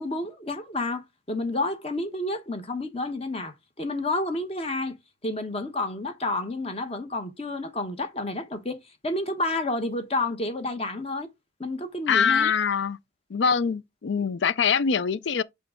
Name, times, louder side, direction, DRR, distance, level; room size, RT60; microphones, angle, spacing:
voice 1, 0.0-5.0 5.2-8.8 9.0-11.3 11.6-12.5, left 2 dB, 30° left, 1.0 m, -30 dB
voice 2, 12.1-13.0 13.3-15.4, left 6 dB, 65° left, 0.4 m, -23 dB
5.7 x 4.9 x 3.6 m
head